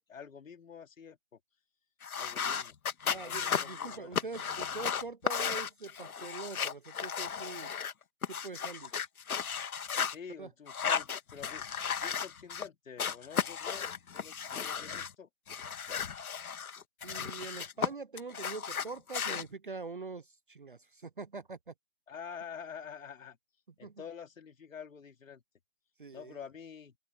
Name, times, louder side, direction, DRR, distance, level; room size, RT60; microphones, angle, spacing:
voice 1, 0.0-1.4 2.2-2.7 3.1-4.2 10.0-11.6 12.0-13.9 14.1-15.3 22.1-23.4 23.8-25.4 26.1-27.0, left 7 dB, 65° left, 2.9 m, -47 dB
sound 1, 2.0-7.9 8.2-10.1 10.7-12.7 13.0-15.1 15.5-17.9 18.2-19.4, left 7 dB, 85° left, 1.8 m, -35 dB
voice 2, 3.1-7.7 8.3-9.1 10.4-10.5 17.0-21.7 23.8-24.0 26.0-26.4, right 4 dB, 40° right, 0.5 m, -44 dB
open air
hypercardioid pair, 175°, 42 cm